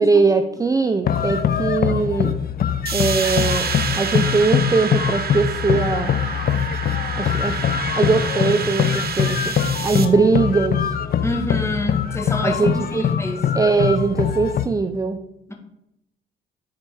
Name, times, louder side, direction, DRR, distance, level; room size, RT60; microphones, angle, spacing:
voice 1, 0.0-2.3 2.9-6.2 7.2-11.0 12.4-13.1 13.5-15.2, right 4 dB, 15° right, 8 dB, 0.5 m, -21 dB
sound 1, 1.0-14.7, left 8 dB, 50° left, 0.6 m, -23 dB
sound 2, 2.9-10.1, right 6 dB, 50° right, 1.0 m, -28 dB
voice 2, 11.2-13.4 15.5-15.6, left 1 dB, 15° left, 2 dB, 1.9 m, -27 dB
10.5 x 4.4 x 4.8 m, 0.82 s
cardioid pair, 90°, 20 cm